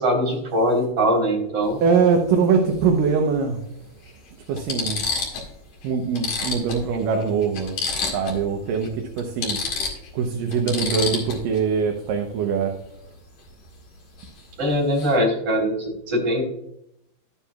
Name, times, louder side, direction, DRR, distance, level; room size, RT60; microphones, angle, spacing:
voice 1, 0.0-1.8 14.6-16.4, equal, 40° right, 0 dB, 3.9 m, -22 dB
sound 1, 1.6-1.8 3.3-3.4 4.1-4.2 4.6-5.5 5.8-5.9 6.1-8.4 8.7-8.9 9.2-11.6 14.2-14.4 14.7-15.2, left 4 dB, 50° left, 3.1 m, -29 dB
voice 2, 1.8-3.6 4.5-5.0 5.8-7.7 8.1-9.6 10.1-12.8, right 5 dB, 70° right, 3 dB, 2.3 m, -22 dB
12.0 x 10.0 x 2.3 m, 0.78 s
omnidirectional pair, 4.4 m